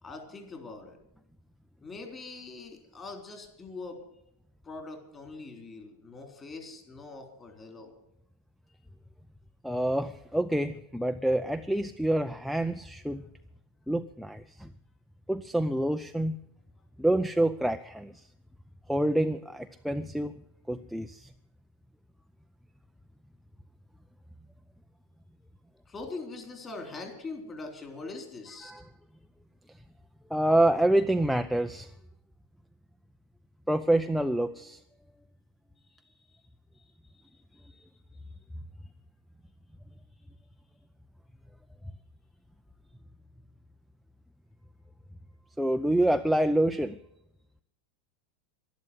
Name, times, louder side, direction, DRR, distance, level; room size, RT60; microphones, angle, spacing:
voice 1, 0.0-1.0 1.8-4.0 4.6-7.9 25.9-28.8 36.0-36.1 36.8-37.9, left 3 dB, 20° left, 4 dB, 3.6 m, -43 dB
voice 2, 9.6-13.2 13.9-14.7 15.3-16.4 17.0-18.1 18.9-20.3 20.7-21.3 28.6-28.8 30.3-31.9 33.7-34.8 45.6-47.0, right 1 dB, ahead, 7 dB, 0.5 m, -27 dB
12.0 x 12.0 x 7.9 m, 0.79 s
supercardioid pair, 135°, 0 cm